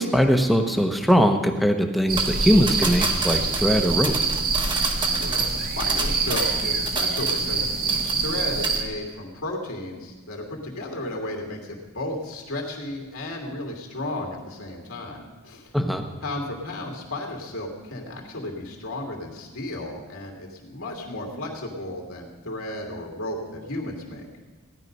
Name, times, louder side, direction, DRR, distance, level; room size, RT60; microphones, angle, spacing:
voice 1, 0.0-4.1 15.7-16.0, equal, ahead, 4 dB, 1.0 m, -21 dB
sound 1, 2.1-8.8, right 4 dB, 45° right, 1.3 m, -25 dB
sound 2, 2.2-7.6 7.9-8.4 8.6-8.8, right 3 dB, 20° right, 1.4 m, -31 dB
voice 2, 5.2-15.7 16.2-24.3, left 1 dB, 70° left, 0 dB, 2.7 m, -34 dB
17.0 x 11.0 x 5.4 m, 1.3 s
head